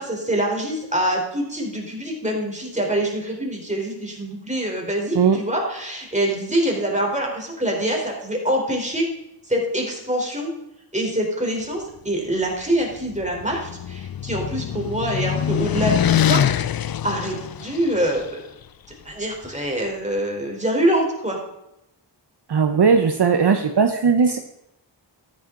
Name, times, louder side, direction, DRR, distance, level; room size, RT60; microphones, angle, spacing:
voice 1, 0.0-9.1 9.5-10.5 10.9-16.4 17.0-18.5 19.1-21.4, right 1 dB, 15° right, 0 dB, 3.6 m, -25 dB
sound 1, 13.0-18.2, left 9 dB, 55° left, 0.5 m, -24 dB
voice 2, 22.5-24.4, right 5 dB, 65° right, 6 dB, 0.9 m, -18 dB
13.0 x 10.5 x 3.8 m, 0.86 s
wide cardioid pair, 65°, 44 cm